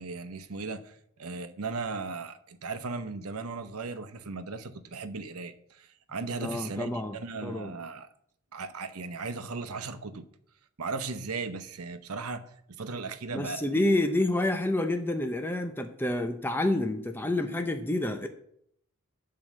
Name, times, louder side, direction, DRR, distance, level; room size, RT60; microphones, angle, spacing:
voice 1, 0.0-8.1 8.5-10.3 10.8-12.4 12.8-13.8, right 4 dB, 85° right, 10 dB, 0.9 m, -37 dB
voice 2, 6.4-7.2 7.4-7.7 13.3-18.3, left 1 dB, 10° left, 6 dB, 0.6 m, -28 dB
9.1 x 4.7 x 7.4 m, 0.68 s
head